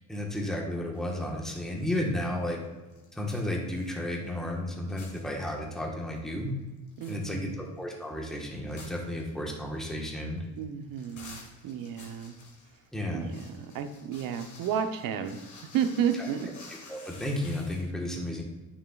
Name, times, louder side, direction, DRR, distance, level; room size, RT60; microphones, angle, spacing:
voice 1, 0.1-2.6 3.1-6.6 7.1-10.4 12.9-13.3 16.2-16.3 16.9-18.4, left 1 dB, ahead, -1 dB, 1.3 m, -33 dB
sound 1, 0.9-1.8 2.1-4.6 4.8-5.8 6.2-6.3 6.7-17.9, left 3 dB, 55° left, 2.1 m, -52 dB
voice 2, 7.0-7.8 10.6-12.4 13.1-16.5, right 8 dB, 65° right, 8 dB, 0.9 m, -32 dB
9.1 x 6.6 x 2.4 m, 1.2 s
cardioid pair, 115°, 36 cm